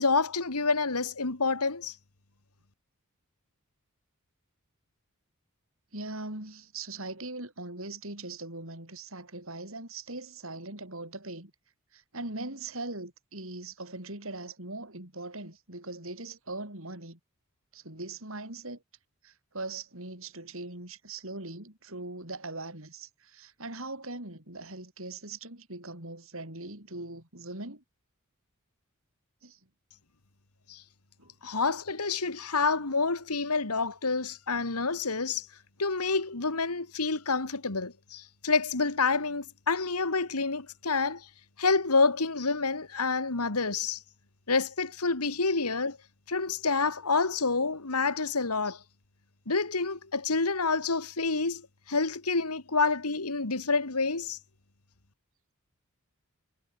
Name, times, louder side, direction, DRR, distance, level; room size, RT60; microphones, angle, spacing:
voice 1, 0.0-1.9 30.7-30.8 31.4-35.5 35.8-41.3 41.6-44.0 44.5-46.0 46.3-48.8 49.5-54.4, left 4 dB, 90° left, 2.3 m, -28 dB
voice 2, 5.9-11.5 11.9-17.2 17.7-18.8 19.2-27.8 29.4-29.6 31.2-31.3, right 2 dB, 60° right, 6.3 m, -40 dB
head